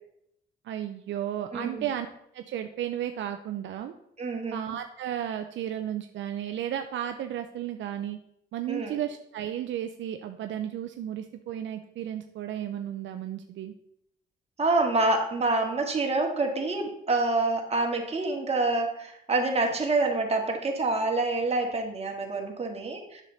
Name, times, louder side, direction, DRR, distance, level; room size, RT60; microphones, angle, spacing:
voice 1, 0.6-2.1 2.3-3.9 4.5-8.2 8.5-13.7, right 10 dB, 70° right, 7 dB, 0.6 m, -33 dB
voice 2, 1.5-1.9 4.2-4.6 8.7-9.0 14.6-23.2, right 2 dB, 30° right, 1 dB, 1.9 m, -27 dB
8.1 x 6.5 x 4.1 m, 0.75 s
cardioid pair, 90°, 20 cm